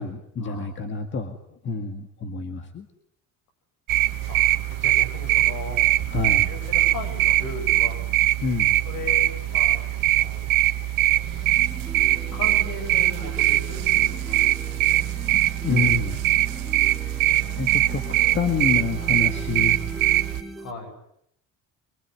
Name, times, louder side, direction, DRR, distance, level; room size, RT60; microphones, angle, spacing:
voice 1, 0.0-1.4 1.6-2.9 6.1-6.5 8.4-8.8 15.2-15.4 15.6-16.2 17.6-18.0 18.3-19.8, left 4 dB, 30° left, 7 dB, 1.9 m, -27 dB
sound 1, 3.9-20.4, right 16 dB, 65° right, 1.7 m, -22 dB
voice 2, 4.8-5.9 6.5-8.0 8.8-10.5 12.1-14.8 16.4-16.5 20.6-20.9, left 3 dB, 60° left, 6 dB, 7.8 m, -37 dB
sound 2, 11.1-20.7, right 1 dB, ahead, 1.8 m, -40 dB
25.5 x 23.5 x 9.7 m, 0.75 s
cardioid pair, 175°, 36 cm